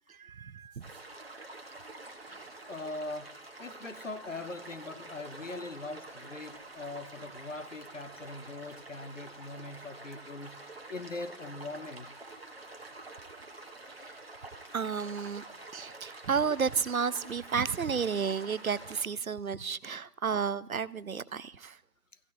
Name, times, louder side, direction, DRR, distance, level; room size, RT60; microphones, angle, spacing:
voice 1, 0.1-0.8 2.3-2.5 14.0-14.2 14.7-15.4 15.7-21.8, right 6 dB, 65° right, 0.5 m, -32 dB
sound 1, 0.8-19.1, right 2 dB, 40° right, 1.2 m, -47 dB
voice 2, 2.7-10.7 10.9-12.1, left 2 dB, 55° left, 0.6 m, -41 dB
22.5 x 16.0 x 2.3 m
figure-of-eight pair, 175°, 47 cm